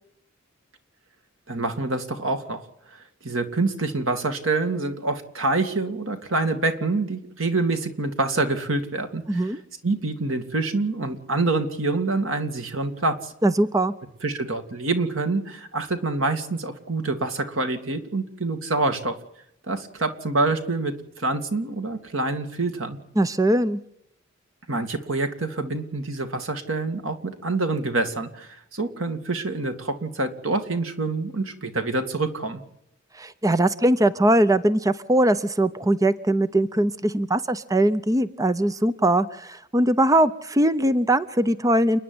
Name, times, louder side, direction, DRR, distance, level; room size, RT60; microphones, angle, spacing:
voice 1, 1.5-2.7 2.9-9.5 9.8-13.3 14.2-19.2 19.7-23.0 24.7-32.6, right 3 dB, 85° right, 7 dB, 2.4 m, -26 dB
voice 2, 9.3-9.6 13.4-13.9 23.2-23.8 33.2-42.0, right 1 dB, 15° right, 14 dB, 0.7 m, -21 dB
29.5 x 10.0 x 9.6 m, 0.79 s
head